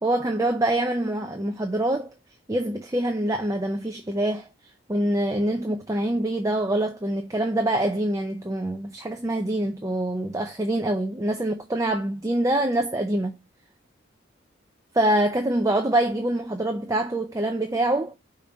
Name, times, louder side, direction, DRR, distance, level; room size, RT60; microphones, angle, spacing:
voice 1, 0.0-2.1 2.5-4.5 4.9-13.3 14.9-18.1, right 1 dB, 15° right, 0.5 m, -25 dB
5.0 x 4.2 x 5.1 m
head